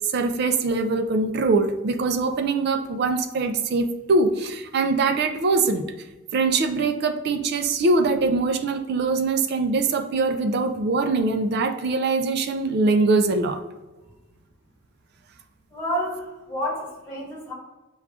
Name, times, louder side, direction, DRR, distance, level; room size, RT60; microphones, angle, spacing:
voice 1, 0.1-5.8 6.3-13.6, right 3 dB, 50° right, 7 dB, 0.3 m, -22 dB
voice 2, 15.7-17.5, equal, 15° left, -5 dB, 1.3 m, -29 dB
6.9 x 2.3 x 2.4 m, 1.1 s
head